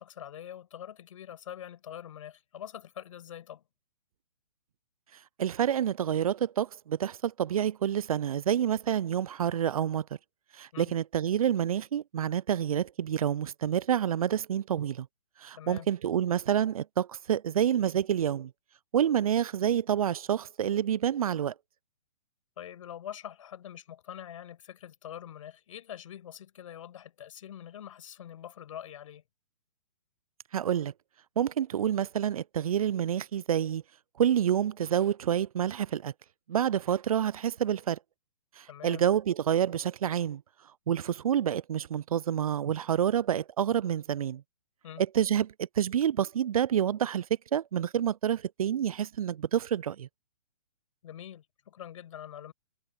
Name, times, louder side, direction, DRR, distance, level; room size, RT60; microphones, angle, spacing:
voice 1, 0.0-3.6 10.7-10.9 15.6-15.9 22.6-29.2 38.7-39.0 44.8-45.0 51.0-52.5, left 10 dB, 55° left, 5.8 m, -44 dB
voice 2, 5.4-10.0 10.6-15.1 15.4-18.5 18.9-21.5 30.5-30.9 31.4-33.8 34.2-36.1 36.5-38.0 38.6-40.4 40.9-44.4 45.0-47.3 47.5-50.1, right 9 dB, 65° right, 0.5 m, -28 dB
figure-of-eight pair, 125°, 20 cm